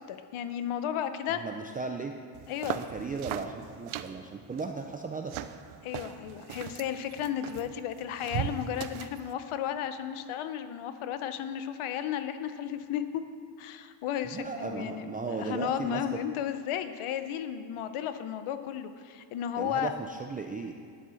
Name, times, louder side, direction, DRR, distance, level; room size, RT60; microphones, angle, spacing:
voice 1, 0.1-1.4 2.5-2.8 5.8-13.2 13.6-20.0, left 9 dB, 80° left, 10 dB, 0.9 m, -34 dB
voice 2, 1.3-2.1 2.6-5.4 14.3-16.2 19.6-20.7, right 4 dB, 20° right, 3 dB, 0.3 m, -36 dB
sound 1, 2.3-9.3, right 11 dB, 75° right, 0.6 m, -39 dB
10.0 x 8.3 x 6.3 m, 2.2 s
cardioid pair, 160°, 49 cm